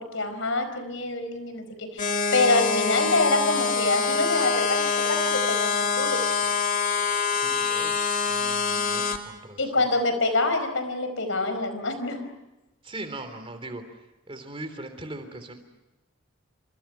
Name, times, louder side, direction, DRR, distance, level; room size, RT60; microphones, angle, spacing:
voice 1, 0.0-6.2 9.6-12.3, left 2 dB, 65° left, 9 dB, 4.7 m, -26 dB
sound 1, 2.0-9.2, left 5 dB, 40° left, 2.5 m, -25 dB
voice 2, 7.2-10.0 12.8-15.6, right 2 dB, 25° right, 9 dB, 3.5 m, -40 dB
28.5 x 26.0 x 5.8 m, 1.0 s
head